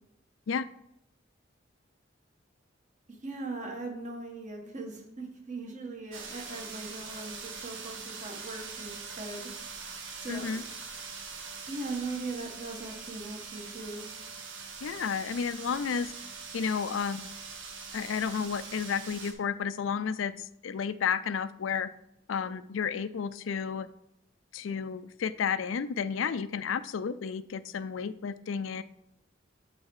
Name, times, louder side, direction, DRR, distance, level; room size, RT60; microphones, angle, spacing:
voice 1, 3.1-9.5 10.2-10.6 11.7-14.1, right 3 dB, 40° right, 1 dB, 1.7 m, -39 dB
sound 1, 6.1-19.3, right 5 dB, 85° right, 1.4 m, -43 dB
voice 2, 10.3-10.6 14.8-16.1 16.5-17.3 17.9-21.9 22.3-23.9 24.5-28.8, left 6 dB, 80° left, 14 dB, 0.4 m, -32 dB
12.0 x 4.1 x 4.8 m, 0.81 s
head